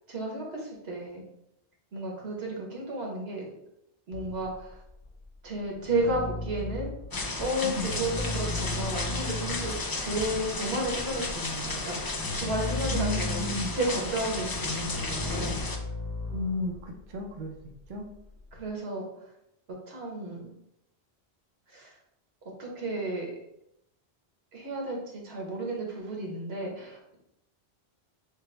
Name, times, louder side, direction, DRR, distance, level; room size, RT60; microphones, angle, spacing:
voice 1, 0.1-1.2 1.9-3.4 4.1-4.8 5.4-6.9 7.4-15.5 18.5-19.1 19.7-20.4 21.7-21.9 22.6-23.3 24.5-27.2, right 1 dB, 70° right, -1 dB, 1.3 m, -33 dB
sound 1, 4.1-7.3 7.7-18.7, left 2 dB, 90° left, 1.4 m, -37 dB
sound 2, 7.1-15.8, left 2 dB, 35° left, 0.3 m, -33 dB
voice 2, 7.6-7.9 12.9-13.7 16.3-17.5 17.9-18.0, left 1 dB, 50° right, 1 dB, 0.7 m, -33 dB
6.6 x 2.2 x 3.2 m, 0.81 s
omnidirectional pair, 1.1 m